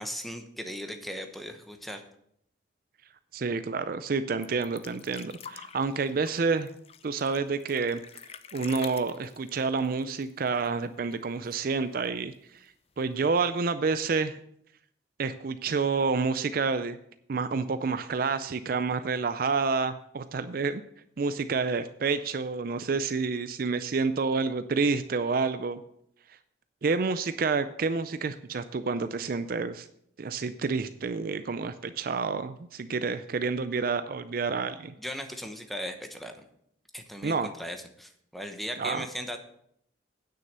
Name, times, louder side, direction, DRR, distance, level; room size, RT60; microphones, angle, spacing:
voice 1, 0.0-2.0 35.0-36.3 36.9-39.4, equal, ahead, 5 dB, 1.0 m, -37 dB
voice 2, 3.3-6.7 7.0-8.0 8.5-12.7 13.0-14.4 15.2-17.0 17.3-20.8 21.2-25.8 26.8-29.9 30.2-34.9 37.2-37.5 38.8-39.0, right 4 dB, 50° right, 11 dB, 0.4 m, -29 dB
sound 1, 4.4-10.8 11.1-11.2 11.5-12.2 13.1-13.2, left 6 dB, 35° left, 0.5 m, -46 dB
9.3 x 6.5 x 6.7 m, 0.70 s
head